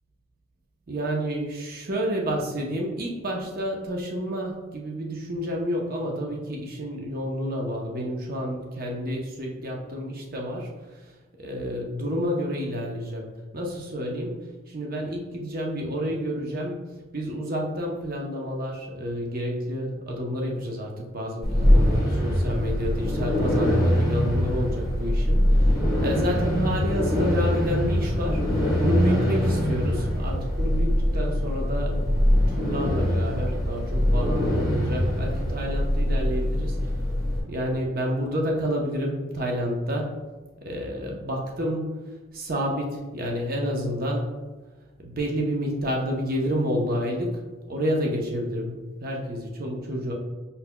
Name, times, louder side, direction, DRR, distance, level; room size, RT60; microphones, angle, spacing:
voice 1, 0.9-11.0 11.4-32.0 32.3-36.9 37.5-40.1 40.6-41.9 42.3-44.3 45.0-47.4 47.7-50.1, equal, 45° right, 0 dB, 0.7 m, -29 dB
sound 1, 21.4-37.4, equal, ahead, 1.2 m, -23 dB
5.5 x 3.9 x 2.2 m, 1.2 s
head